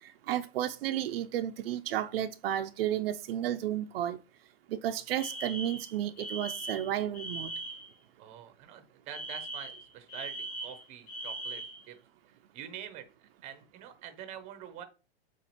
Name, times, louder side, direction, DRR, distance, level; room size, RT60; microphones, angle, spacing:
voice 1, 0.0-4.2 4.7-7.5, right 11 dB, 70° right, 0.4 m, -32 dB
Alarm, 5.2-7.9 9.1-11.8, right 2 dB, 55° left, 2.0 m, -40 dB
voice 2, 8.2-12.0 12.3-14.8, right 10 dB, 25° right, 0.6 m, -46 dB
7.1 x 2.5 x 2.8 m
hypercardioid pair, 150°, 30 cm